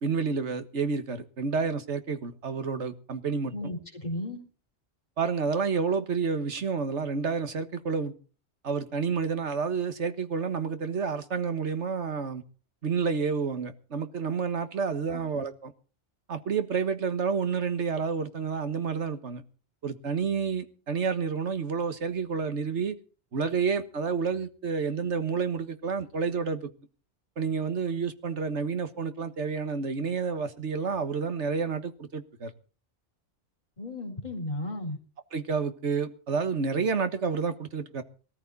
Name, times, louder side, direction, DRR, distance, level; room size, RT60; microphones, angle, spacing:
voice 1, 0.0-3.5 5.2-8.1 8.6-12.4 12.8-15.7 16.3-19.4 19.8-23.0 23.3-26.7 27.4-32.5 35.3-38.0, right 5 dB, 70° right, 1.7 m, -29 dB
voice 2, 3.5-4.4 15.1-15.2 33.8-35.0, left 1 dB, 35° left, 4.1 m, -34 dB
19.0 x 14.0 x 4.1 m
omnidirectional pair, 1.2 m